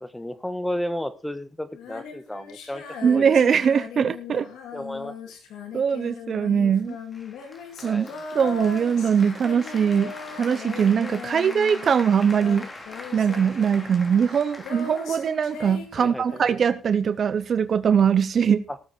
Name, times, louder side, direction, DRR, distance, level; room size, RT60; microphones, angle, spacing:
voice 1, 0.0-3.2 4.7-5.2 7.8-8.2 15.9-16.4 18.7-18.8, left 1 dB, 10° left, 1.6 m, -33 dB
Female singing, 1.7-12.1 12.3-16.8, left 6 dB, 85° left, 2.9 m, -39 dB
voice 2, 3.0-4.5 5.7-7.0 7.8-8.1 8.3-10.1 10.4-12.7 13.1-18.6, right 7 dB, 50° right, 0.7 m, -21 dB
Applause, 7.1-16.1, left 2 dB, 25° left, 3.2 m, -42 dB
18.5 x 7.7 x 4.4 m
cardioid pair, 90°, 0 cm